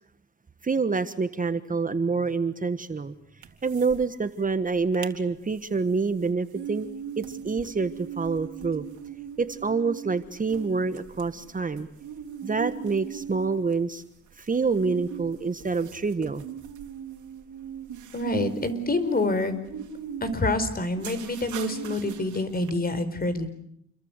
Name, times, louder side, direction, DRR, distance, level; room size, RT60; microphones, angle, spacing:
voice 1, 0.6-3.1 3.6-6.9 7.2-8.8 9.4-11.9 12.4-14.0 14.4-16.4, right 4 dB, 25° right, 11 dB, 1.4 m, -27 dB
sound 1, 3.4-4.0 4.3-4.4 4.8-5.2 5.6-22.7, right 8 dB, 75° right, 3.3 m, -40 dB
voice 2, 18.1-19.6 20.2-23.5, left 2 dB, 30° left, 12 dB, 4.8 m, -27 dB
29.0 x 23.0 x 8.3 m, 0.70 s
cardioid pair, 90°, 30 cm